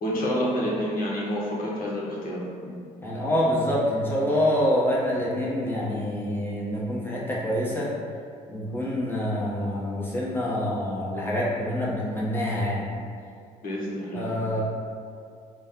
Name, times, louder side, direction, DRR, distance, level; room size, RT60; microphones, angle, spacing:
voice 1, 0.0-2.7 13.6-14.2, equal, 50° left, -5 dB, 1.1 m, -28 dB
voice 2, 3.0-7.9 8.5-12.8 14.1-14.6, equal, 10° left, -6 dB, 1.2 m, -26 dB
4.0 x 2.4 x 3.6 m, 2.2 s
hypercardioid pair, 55°, 19 cm